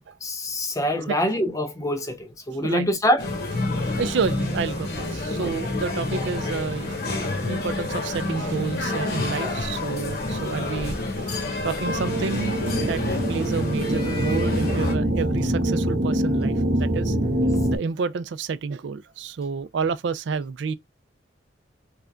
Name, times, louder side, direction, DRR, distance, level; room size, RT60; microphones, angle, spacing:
voice 1, 0.2-3.3 5.4-5.5 9.4-9.5, equal, 15° left, 0.5 m, -25 dB
sound 1, 3.2-14.9, left 2 dB, 50° left, 1.1 m, -28 dB
voice 2, 3.8-7.0 7.4-11.3 11.6-13.0 13.3-17.2 17.7-20.7, right 5 dB, 70° right, 0.4 m, -29 dB
sound 2, 11.9-17.8, right 1 dB, 55° right, 0.8 m, -24 dB
3.7 x 3.3 x 2.3 m
head